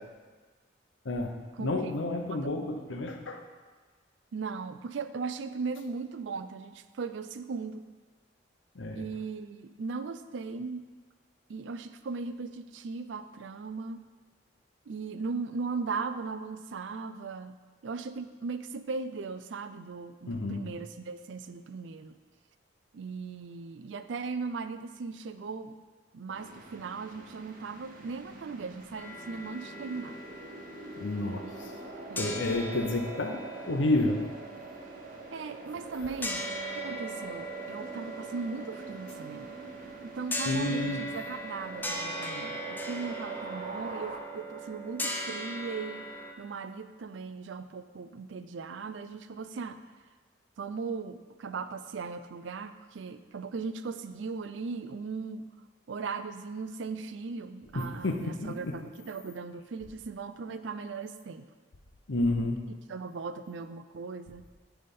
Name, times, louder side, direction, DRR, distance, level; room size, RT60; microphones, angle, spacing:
voice 1, 1.0-3.4 8.8-9.0 20.3-20.7 31.0-31.5 32.2-33.4 33.7-34.3 40.5-41.0 57.7-58.7 62.1-62.6, left 2 dB, 80° left, 4 dB, 0.8 m, -30 dB
voice 2, 1.6-1.9 2.2-2.5 4.3-7.8 8.9-10.8 11.5-14.1 14.9-17.6 17.8-22.2 22.9-25.8 26.1-30.2 32.1-32.5 35.3-39.6 40.0-46.1 46.4-49.8 50.6-55.5 55.9-61.4 62.9-64.5, right 4 dB, 70° right, 11 dB, 0.4 m, -38 dB
sound 1, 26.3-44.2, right 2 dB, 50° right, 0.9 m, -45 dB
sound 2, 29.0-31.9 32.2-46.3, equal, 10° left, 0.6 m, -40 dB
9.7 x 3.4 x 5.3 m, 1.4 s
head